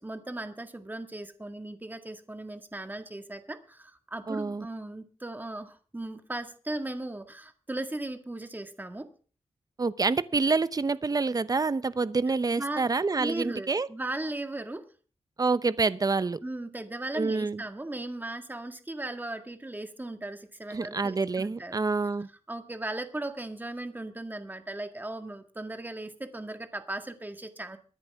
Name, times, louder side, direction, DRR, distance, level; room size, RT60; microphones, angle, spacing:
voice 1, 0.0-9.1 12.5-12.8 13.2-14.8 16.4-21.7 22.5-27.8, right 2 dB, 15° right, 1.9 m, -37 dB
voice 2, 4.3-4.7 9.8-13.9 15.4-16.4 17.1-17.6 20.7-22.3, right 4 dB, 35° right, 0.8 m, -27 dB
23.0 x 10.5 x 3.6 m
wide cardioid pair, 100°, 11 cm